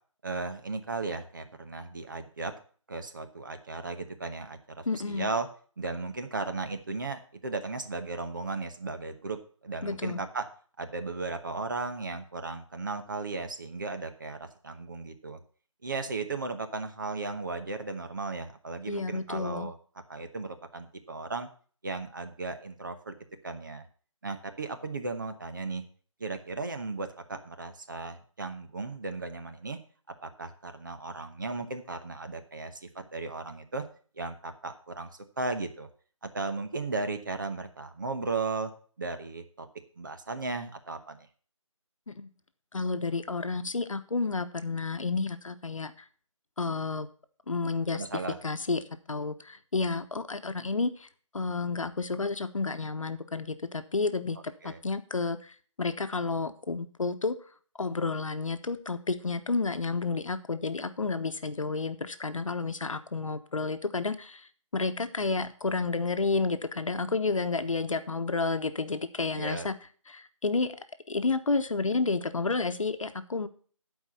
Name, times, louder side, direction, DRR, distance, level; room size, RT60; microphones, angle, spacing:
voice 1, 0.2-2.5 2.9-5.5 5.8-9.4 9.6-10.5 10.8-15.4 15.8-19.8 20.1-21.5 21.8-23.2 23.4-23.8 24.2-25.8 26.2-29.8 30.2-33.8 34.2-35.9 36.3-38.7 39.0-39.7 40.0-41.3 47.9-48.4 54.6-54.8 69.3-69.7, right 3 dB, 35° right, 7 dB, 1.1 m, -36 dB
voice 2, 4.9-5.3 9.8-10.2 18.9-19.7 42.1-42.3 42.7-45.9 46.6-47.1 47.5-48.0 48.4-48.8 49.1-51.1 51.3-57.4 57.8-69.7 70.1-70.7 71.1-73.5, left 3 dB, 75° left, 10 dB, 1.1 m, -31 dB
12.0 x 4.8 x 6.9 m, 0.43 s
figure-of-eight pair, 170°, 17 cm